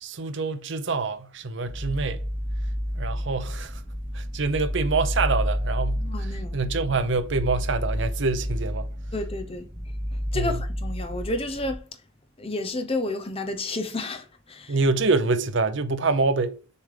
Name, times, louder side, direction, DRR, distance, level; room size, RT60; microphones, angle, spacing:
voice 1, 0.0-2.2 3.0-3.8 4.1-6.0 6.5-8.9 10.3-10.5 14.7-16.6, right 3 dB, 60° right, 0.7 m, -26 dB
sound 1, 1.7-11.8, equal, 10° right, 0.8 m, -30 dB
voice 2, 6.0-6.6 9.1-9.7 10.3-11.8 12.4-14.8, left 2 dB, 30° left, 0.8 m, -31 dB
6.8 x 3.5 x 5.0 m
head